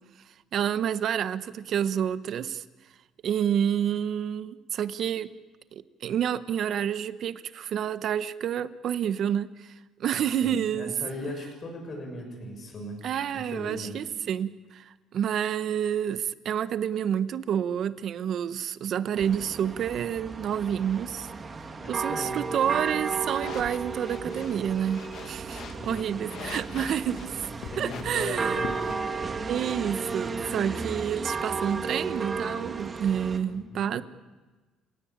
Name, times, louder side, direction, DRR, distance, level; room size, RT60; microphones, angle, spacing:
voice 1, 0.5-2.6 3.2-5.3 5.7-9.7 10.0-10.9 13.0-21.3 21.9-27.3 27.8-28.6 29.5-34.0, right 9 dB, 50° right, 13 dB, 1.0 m, -29 dB
voice 2, 10.0-13.0 13.3-14.1 21.8-22.4 25.8-26.1 27.7-28.9 33.5-34.0, left 1 dB, 35° left, 3 dB, 6.8 m, -38 dB
sound 1, 19.2-33.4, right 4 dB, 25° right, 2.0 m, -34 dB
sound 2, 23.3-28.9, left 7 dB, 55° left, 1.8 m, -43 dB
30.0 x 17.0 x 8.8 m, 1.3 s
cardioid pair, 135°, 0 cm